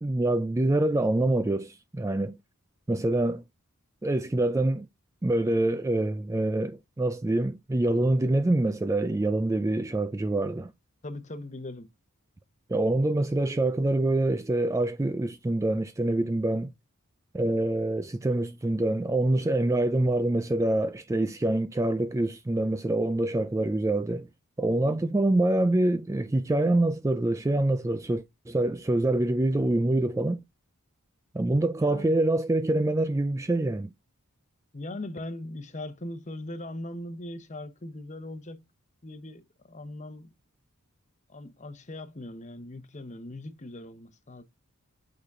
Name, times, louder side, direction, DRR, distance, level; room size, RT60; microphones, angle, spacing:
voice 1, 0.0-2.4 2.9-3.4 4.0-4.9 5.2-10.7 12.7-16.7 17.3-24.3 24.6-30.4 31.3-33.9, right 2 dB, 15° right, 0.3 m, -25 dB
voice 2, 11.0-11.9 24.8-25.2 31.7-32.2 34.7-38.6 39.0-40.3 41.3-44.4, left 1 dB, 30° left, 0.9 m, -40 dB
8.4 x 3.9 x 3.6 m
head